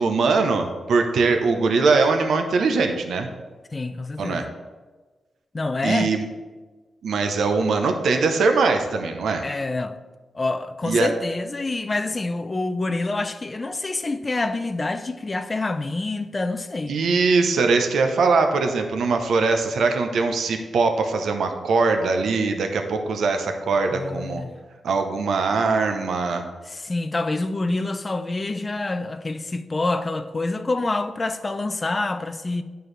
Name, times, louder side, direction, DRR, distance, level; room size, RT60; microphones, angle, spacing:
voice 1, 0.0-3.3 4.2-4.4 5.8-6.3 7.0-9.4 10.8-11.1 16.9-24.4 24.8-26.4, right 4 dB, 80° right, 0.7 m, -21 dB
voice 2, 3.7-4.4 5.5-6.1 9.4-10.0 10.3-17.0 23.9-24.5 26.7-32.6, left 2 dB, 25° left, 0.4 m, -27 dB
11.0 x 4.5 x 3.3 m
wide cardioid pair, 150°, 0 cm